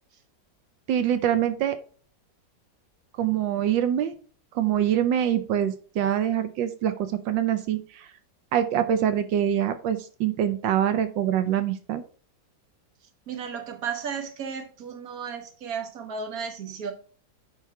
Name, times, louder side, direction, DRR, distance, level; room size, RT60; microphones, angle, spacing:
voice 1, 0.9-1.8 3.2-4.1 4.5-8.1 8.5-12.0, right 10 dB, 85° right, 9 dB, 1.5 m, -24 dB
voice 2, 13.3-16.9, right 6 dB, 55° right, 6 dB, 1.7 m, -34 dB
10.0 x 3.6 x 4.5 m, 0.40 s
omnidirectional pair, 2.0 m